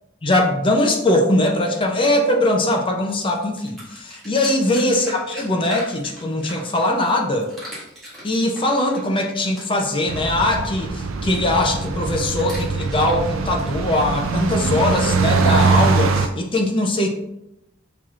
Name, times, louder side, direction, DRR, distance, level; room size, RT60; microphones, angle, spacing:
voice 1, 0.2-7.5 8.2-17.1, left 1 dB, 25° left, 2 dB, 0.5 m, -21 dB
sound 1, 3.0-7.1 7.4-9.9 11.3-14.1, equal, ahead, 1.6 m, -40 dB
sound 2, 10.1-16.3, right 4 dB, 90° right, 0.4 m, -22 dB
5.8 x 3.0 x 2.4 m, 0.86 s
head